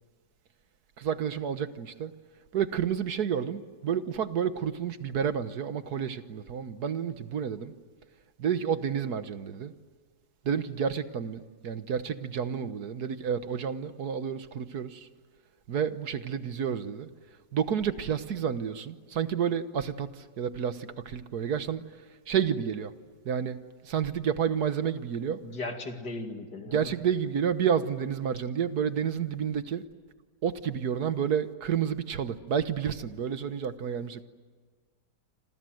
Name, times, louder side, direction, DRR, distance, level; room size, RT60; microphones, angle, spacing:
voice 1, 1.0-2.1 2.5-7.7 8.4-9.7 10.4-15.1 15.7-17.1 17.5-20.1 20.4-21.8 22.3-22.9 23.2-23.6 23.8-25.4 26.7-29.8 30.4-34.3, right 8 dB, 65° right, 11 dB, 1.6 m, -30 dB
voice 2, 25.4-26.9, left 2 dB, 70° left, 5 dB, 3.0 m, -37 dB
28.0 x 26.5 x 7.8 m, 1.5 s
omnidirectional pair, 1.8 m